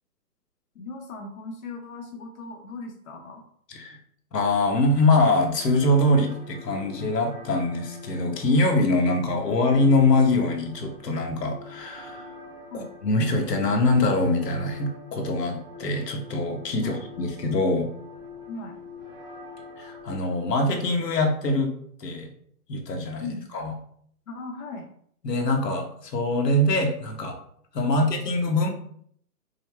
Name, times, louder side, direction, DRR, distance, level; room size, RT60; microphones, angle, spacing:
voice 1, 0.7-3.4 12.7-12.9 16.8-17.0 18.5-18.8 23.2-23.5 24.3-24.9 27.8-28.0, left 3 dB, 60° left, 2 dB, 0.8 m, -38 dB
voice 2, 4.3-12.3 12.7-17.9 19.8-21.7 22.0-22.3 22.7-23.7 25.2-27.4 27.7-28.7, left 2 dB, 90° left, 3 dB, 1.2 m, -23 dB
sound 1, 5.5-21.5, left 3 dB, 5° right, 1.0 m, -45 dB
5.5 x 2.1 x 3.3 m, 0.64 s
hypercardioid pair, 170°, 48 cm